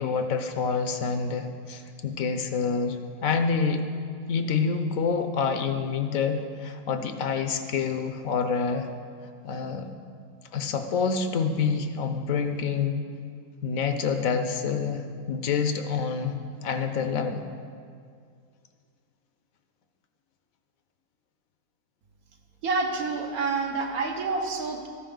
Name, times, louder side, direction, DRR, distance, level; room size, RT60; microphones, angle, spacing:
voice 1, 0.0-3.8 4.3-8.9 9.4-9.9 10.5-13.0 13.6-17.5, left 5 dB, 70° left, 7 dB, 1.2 m, -27 dB
voice 2, 22.6-24.9, right 4 dB, 80° right, 3 dB, 1.5 m, -28 dB
13.5 x 10.0 x 3.9 m, 2.2 s
omnidirectional pair, 1.5 m